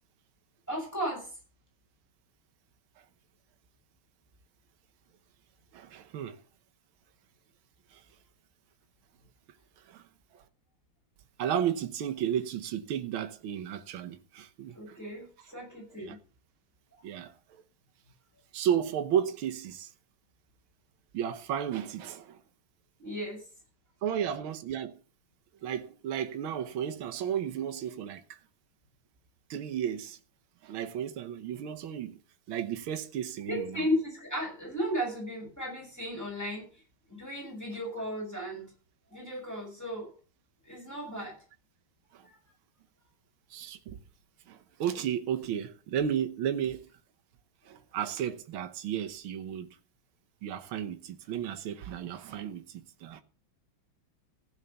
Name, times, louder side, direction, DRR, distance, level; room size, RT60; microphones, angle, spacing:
voice 1, 0.7-1.3 14.7-15.3 15.5-16.2 23.0-23.4 33.4-36.7 37.1-38.7 39.1-40.1 40.6-41.4, equal, 5° left, 6.4 m, -34 dB
voice 2, 5.7-6.4 7.9-8.0 9.9-10.4 11.4-15.0 16.0-16.2 17.0-17.6 18.5-19.9 21.1-22.4 24.0-25.0 25.6-28.2 29.5-30.2 30.6-32.2 32.5-33.9 42.1-42.3 43.5-44.0 44.5-46.9 47.7-49.8 50.4-53.2, right 9 dB, 75° right, 1.8 m, -33 dB
16.0 x 5.6 x 6.8 m
omnidirectional pair, 2.3 m